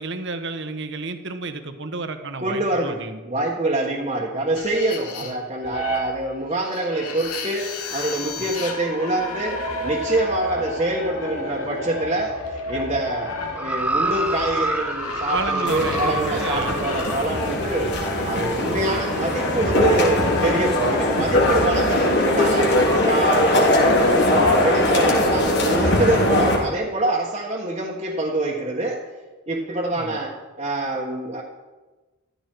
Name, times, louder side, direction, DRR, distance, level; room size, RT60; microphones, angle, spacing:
voice 1, 0.0-3.2 8.4-8.5 15.3-16.8 18.5-18.6 29.9-30.2, right 3 dB, 55° right, 8 dB, 1.2 m, -31 dB
voice 2, 2.4-29.0 29.5-31.4, right 2 dB, 25° right, -4 dB, 1.4 m, -25 dB
sound 1, 4.5-21.2, left 2 dB, 85° left, 2.2 m, -31 dB
sound 2, 13.6-17.2 18.0-18.1, right 1 dB, 5° right, 0.6 m, -27 dB
sound 3, 15.7-26.6, left 1 dB, 50° left, 3.2 m, -20 dB
14.5 x 13.5 x 4.6 m, 1.2 s
head